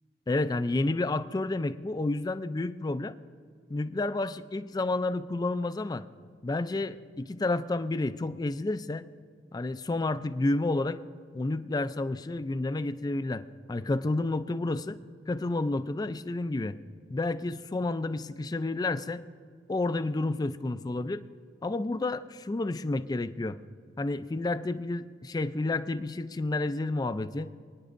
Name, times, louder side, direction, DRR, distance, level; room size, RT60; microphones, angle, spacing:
voice 1, 0.3-3.1 3.7-6.0 6.4-9.1 9.5-11.0 11.3-15.0 15.3-16.8 17.1-19.2 19.7-21.2 21.6-23.6 24.0-27.5, left 2 dB, 20° left, 12 dB, 0.3 m, -30 dB
28.0 x 9.6 x 2.5 m, 2.1 s
head